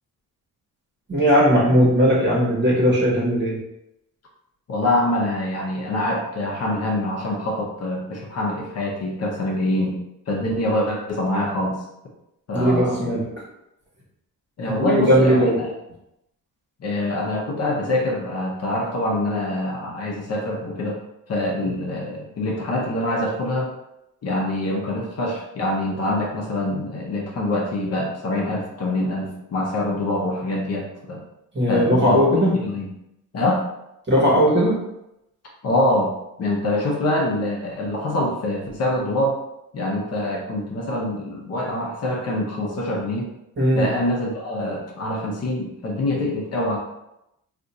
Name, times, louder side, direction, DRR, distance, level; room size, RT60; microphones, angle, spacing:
voice 1, 1.1-3.6 12.5-13.3 14.8-15.6 31.5-32.6 34.1-34.8 43.6-43.9, equal, 35° right, -4 dB, 1.2 m, -18 dB
voice 2, 4.7-10.0 10.3-11.8 12.5-13.1 14.6-15.5 16.8-21.0 21.3-23.7 24.2-31.2 31.7-32.2 32.5-32.9 33.3-33.6 35.6-36.1 36.4-39.4 39.7-43.3 43.8-46.8, left 1 dB, 50° left, -1 dB, 0.8 m, -25 dB
2.5 x 2.5 x 4.1 m, 0.86 s
cardioid pair, 130°, 33 cm